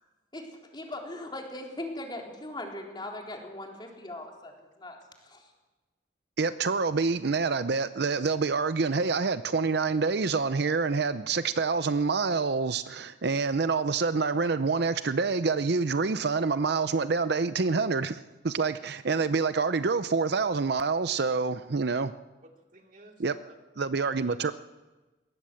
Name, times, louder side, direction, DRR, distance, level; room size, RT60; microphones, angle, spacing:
voice 1, 0.3-5.5, left 1 dB, 25° left, 3.7 m, -40 dB
voice 2, 6.4-22.1 23.2-23.4 23.8-24.5, right 4 dB, 60° right, 0.6 m, -27 dB
voice 3, 22.4-23.6 24.2-24.5, right 2 dB, 45° right, 2.6 m, -55 dB
21.5 x 18.0 x 7.8 m
head